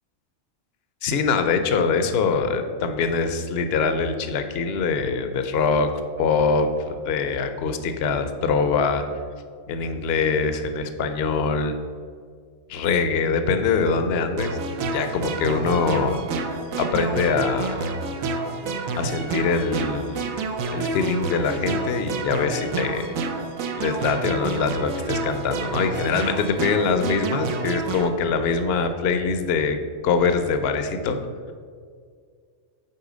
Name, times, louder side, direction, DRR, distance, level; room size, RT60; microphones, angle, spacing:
voice 1, 1.0-5.9 6.2-9.0 9.7-11.8 12.7-14.6 14.9-16.2 16.8-17.8 19.0-20.3 20.7-23.1 23.8-31.2, left 5 dB, 60° left, 8 dB, 0.8 m, -23 dB
sound 1, 14.4-28.1, right 3 dB, 85° right, 1.1 m, -29 dB
6.8 x 4.5 x 4.9 m, 2.1 s
omnidirectional pair, 1.4 m